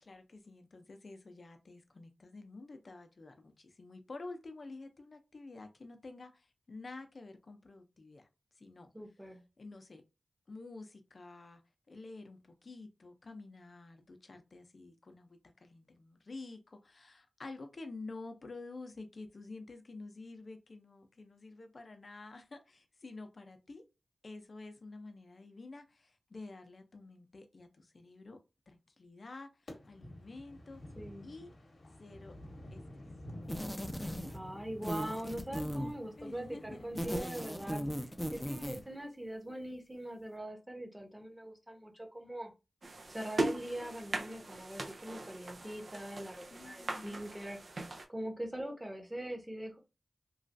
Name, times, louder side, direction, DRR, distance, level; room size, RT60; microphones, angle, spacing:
voice 1, 0.0-8.3 8.5-8.9 9.6-10.0 10.5-11.6 11.9-23.8 24.2-28.4 28.7-30.8 31.2-31.5 32.0-32.4 32.7-33.0 36.2-36.9 46.5-47.2, left 3 dB, 60° left, 0.6 m, -49 dB
voice 2, 8.9-9.4 30.9-31.3 34.3-42.5 43.1-47.6 48.1-49.8, right 1 dB, 15° right, 1.0 m, -42 dB
sound 1, 29.7-39.0, left 1 dB, 75° left, 0.9 m, -50 dB
sound 2, 33.5-34.5 34.8-36.0 36.8-38.9, equal, 5° left, 0.5 m, -38 dB
sound 3, 42.8-48.1, right 2 dB, 65° right, 0.5 m, -39 dB
3.1 x 2.4 x 2.6 m
wide cardioid pair, 60°, 0 cm